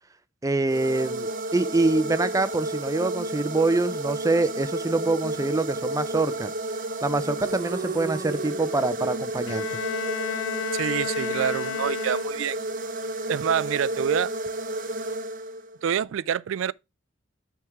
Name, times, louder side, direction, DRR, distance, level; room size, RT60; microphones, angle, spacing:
voice 1, 0.4-6.5 7.0-9.8, right 2 dB, 15° right, 0.5 m, -25 dB
sound 1, 0.6-15.9, right 1 dB, 45° right, 0.8 m, -31 dB
Bowed string instrument, 9.5-12.7, left 11 dB, 80° left, 0.3 m, -33 dB
voice 2, 10.7-12.6 13.3-14.3 15.8-16.7, right 8 dB, 85° right, 0.3 m, -26 dB
9.2 x 3.6 x 4.6 m
head